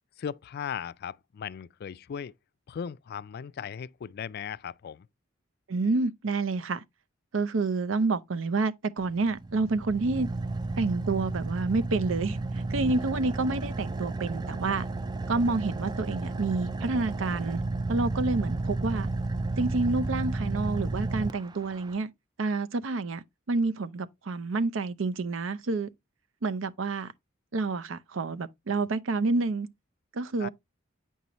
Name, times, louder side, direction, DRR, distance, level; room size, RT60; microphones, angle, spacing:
voice 1, 0.2-2.4 2.7-5.1 30.4-30.5, left 7 dB, 55° left, 0.3 m, -37 dB
voice 2, 5.7-6.8 7.3-10.3 10.8-14.9 15.3-17.6 17.9-19.1 19.6-22.1 22.4-25.9 26.4-27.1 27.5-29.7 30.1-30.5, right 3 dB, 85° right, 0.6 m, -28 dB
Car / Idling, 9.0-22.0, right 2 dB, 20° right, 0.3 m, -32 dB
8.7 x 5.5 x 3.0 m
head